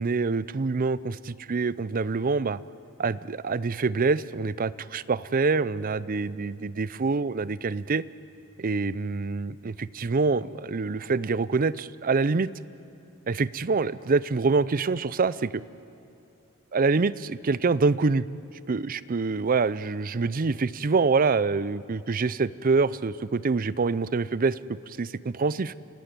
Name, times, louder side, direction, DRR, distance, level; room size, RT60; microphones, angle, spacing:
voice 1, 0.0-2.6 3.0-8.0 8.6-12.5 13.3-15.6 16.7-18.3 18.7-25.7, right 4 dB, 40° right, 18 dB, 0.5 m, -26 dB
29.0 x 17.0 x 9.6 m, 2.8 s
head